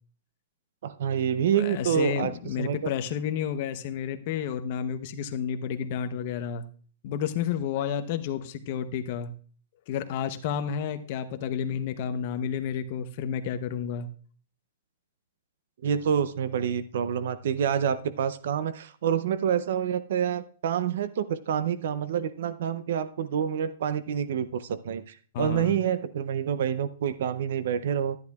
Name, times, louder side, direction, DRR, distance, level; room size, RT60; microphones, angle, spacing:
voice 1, 0.8-2.3 2.6-2.9 15.8-25.0 25.4-28.2, right 8 dB, 65° right, 15 dB, 0.5 m, -27 dB
voice 2, 1.6-6.6 7.0-9.3 9.9-14.1 25.3-25.8, left 8 dB, 40° left, 10 dB, 0.8 m, -31 dB
12.0 x 10.5 x 2.3 m, 0.43 s
hypercardioid pair, 165°, 0 cm